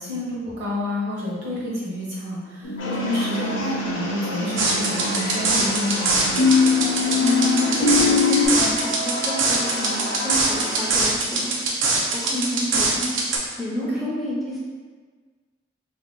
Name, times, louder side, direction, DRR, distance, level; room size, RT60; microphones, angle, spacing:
voice 1, 0.0-6.3 14.0-14.1, left 2 dB, 65° right, -7 dB, 1.0 m, -29 dB
sound 1, 2.6-8.5, left 4 dB, 50° left, 0.6 m, -23 dB
sound 2, 2.8-10.9, left 1 dB, 90° left, 0.7 m, -31 dB
sound 3, 4.6-13.4, right 3 dB, 85° right, 0.5 m, -23 dB
voice 2, 7.2-13.3 13.6-14.6, equal, ahead, -7 dB, 0.4 m, -29 dB
2.7 x 2.2 x 3.6 m, 1.5 s
head